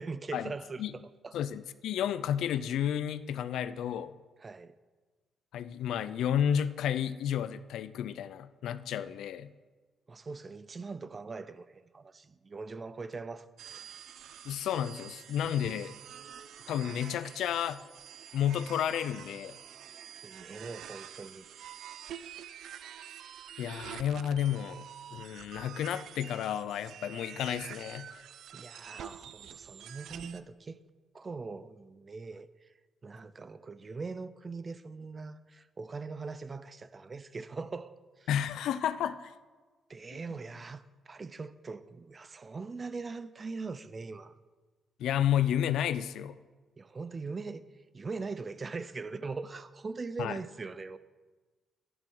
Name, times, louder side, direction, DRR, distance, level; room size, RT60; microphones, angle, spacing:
voice 1, 0.0-1.4 4.4-4.7 10.1-13.8 20.2-21.5 28.5-30.8 31.1-32.7 33.0-38.3 39.9-44.3 46.8-51.0, right 4 dB, 35° right, 0.6 m, -41 dB
voice 2, 1.3-4.1 5.5-9.5 14.4-16.0 16.7-17.8 18.3-19.6 23.6-28.1 38.3-39.3 45.0-46.4 50.2-50.4, left 10 dB, 80° left, 0.5 m, -31 dB
sound 1, 13.6-30.4, right 9 dB, 75° right, 0.5 m, -47 dB
11.0 x 10.5 x 6.3 m
cardioid pair, 90°, 0 cm